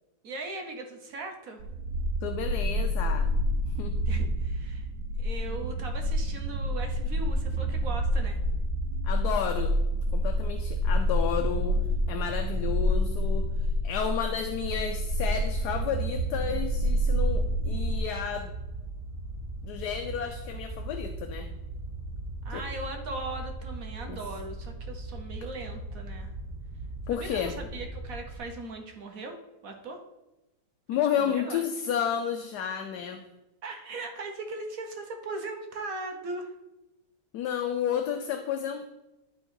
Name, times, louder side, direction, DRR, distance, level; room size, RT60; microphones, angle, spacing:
voice 1, 0.2-1.6 4.1-4.9 5.2-8.4 22.4-26.3 27.1-30.0 30.9-31.6 33.6-36.5, right 2 dB, 60° right, 4 dB, 1.3 m, -39 dB
sound 1, 1.6-18.0, equal, 80° right, 1.4 m, -28 dB
voice 2, 2.2-3.3 3.8-3.9 9.0-9.8 10.1-11.8 12.1-13.5 13.8-18.5 19.6-21.5 22.5-22.6 24.1-24.2 27.1-27.6 30.9-33.2 37.3-38.9, left 8 dB, 70° left, 6 dB, 1.1 m, -31 dB
sound 2, 14.5-28.4, right 2 dB, 30° right, 1.5 m, -39 dB
11.5 x 3.8 x 4.4 m, 1.0 s
omnidirectional pair, 1.9 m